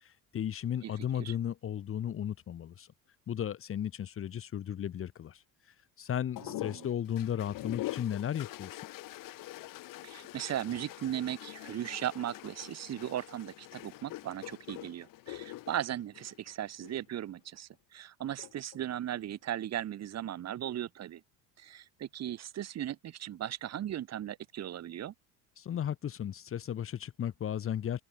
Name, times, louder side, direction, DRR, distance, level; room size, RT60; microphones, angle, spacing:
voice 1, 0.0-2.9 3.3-5.4 6.0-8.8 25.6-28.0, left 9 dB, 35° left, 2.4 m, -35 dB
voice 2, 0.8-1.3 6.4-6.9 10.0-21.2 21.6-25.1, right 11 dB, 45° right, 6.5 m, -37 dB
sound 1, 6.4-17.0 18.2-18.8, left 17 dB, 60° left, 7.5 m, -44 dB
cardioid pair, 130°, 37 cm